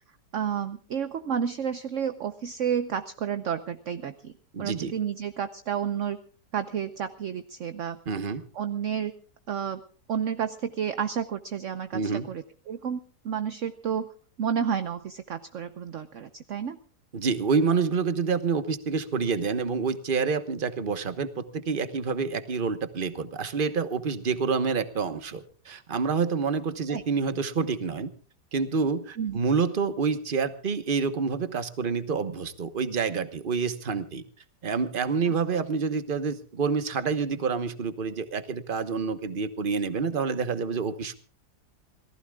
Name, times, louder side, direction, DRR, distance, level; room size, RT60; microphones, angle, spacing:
voice 1, 0.3-4.3 4.6-6.2 6.5-8.0 8.5-9.1 9.5-9.8 10.1-14.1 14.4-16.8 26.9-27.0 29.2-29.4, right 8 dB, 55° right, 10 dB, 1.0 m, -31 dB
voice 2, 4.5-4.9 8.1-8.4 11.9-12.3 17.1-28.1 28.5-34.2 34.6-41.1, right 5 dB, 35° right, 10 dB, 1.2 m, -28 dB
28.0 x 18.5 x 2.4 m, 0.42 s
omnidirectional pair, 1.9 m